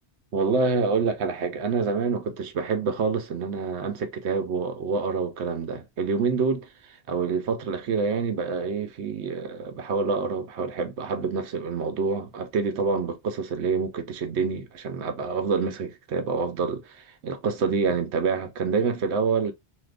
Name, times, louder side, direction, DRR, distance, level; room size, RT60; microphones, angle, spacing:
voice 1, 0.3-19.5, right 5 dB, 75° right, 0.9 m, -27 dB
2.8 x 2.4 x 3.4 m
omnidirectional pair, 1.1 m